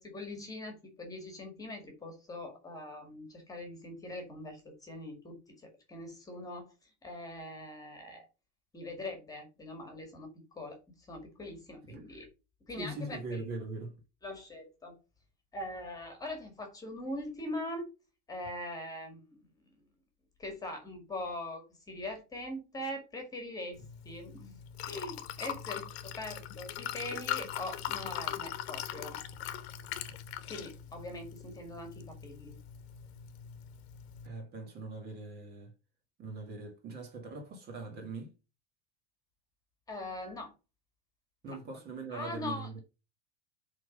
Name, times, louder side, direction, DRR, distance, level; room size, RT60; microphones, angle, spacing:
voice 1, 0.0-5.4 5.9-6.7 7.0-8.3 8.7-12.3 12.7-13.4 14.2-15.0 15.5-17.9 18.3-19.2 19.8-19.9 20.4-23.8 24.0-24.6 24.8-29.2 30.5-32.6 39.9-40.5 41.5-41.6 42.1-42.8, left 1 dB, 10° left, 1.9 m, -42 dB
voice 2, 12.8-14.0 34.2-35.7 36.2-38.3 41.4-42.8, right 3 dB, 30° right, 1.9 m, -41 dB
Liquid, 23.7-34.3, left 11 dB, 75° left, 1.3 m, -41 dB
7.3 x 3.9 x 5.2 m
supercardioid pair, 165°, 31 cm